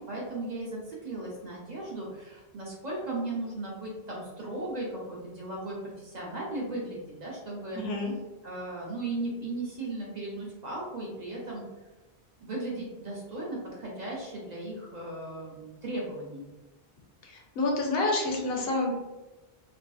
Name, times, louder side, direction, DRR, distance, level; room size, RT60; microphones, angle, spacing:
voice 1, 0.0-7.8 8.4-11.7 12.4-16.5, right 2 dB, 50° right, -4 dB, 0.6 m, -36 dB
voice 2, 7.7-8.1 17.2-18.9, left 2 dB, 70° left, 0 dB, 0.8 m, -28 dB
2.4 x 2.4 x 2.3 m, 1.1 s
omnidirectional pair, 1.1 m